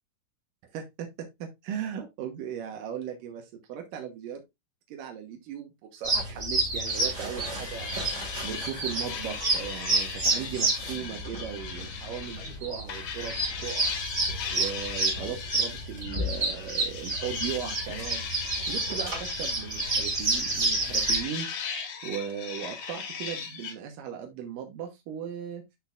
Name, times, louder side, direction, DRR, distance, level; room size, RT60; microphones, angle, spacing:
voice 1, 0.7-4.4 4.9-14.0 14.5-18.2 18.7-21.5 22.0-25.6, right 8 dB, 85° right, 3 dB, 2.7 m, -37 dB
sound 1, 6.0-21.2, right 2 dB, 25° right, 1.8 m, -29 dB
sound 2, 6.9-12.6 12.9-23.8, left 6 dB, 60° left, 2.1 m, -38 dB
12.0 x 4.3 x 2.4 m, 0.21 s
omnidirectional pair, 3.8 m